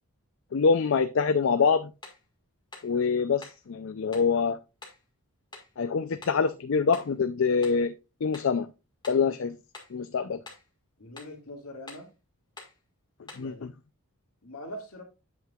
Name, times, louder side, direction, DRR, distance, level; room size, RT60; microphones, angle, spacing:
voice 1, 0.5-1.9 2.8-4.6 5.8-7.9 8.2-8.7 9.1-9.6 9.9-10.4 13.4-13.7, left 5 dB, 60° left, 0.4 m, -25 dB
sound 1, 2.0-2.3 2.7-2.9 3.4-3.7 4.1-4.3 4.8-5.0 5.5-5.7 6.2-6.5 6.9-7.2 7.6-7.9 8.3-8.6 9.0-9.3 9.7-10.0 10.4-10.7 11.2-11.4 11.9-12.1 12.6-12.8 13.3-13.5, left 3 dB, 20° left, 1.7 m, -47 dB
voice 2, 11.0-12.1 13.4-13.7 14.4-15.0, left 1 dB, 75° left, 2.2 m, -42 dB
8.3 x 7.5 x 2.4 m
head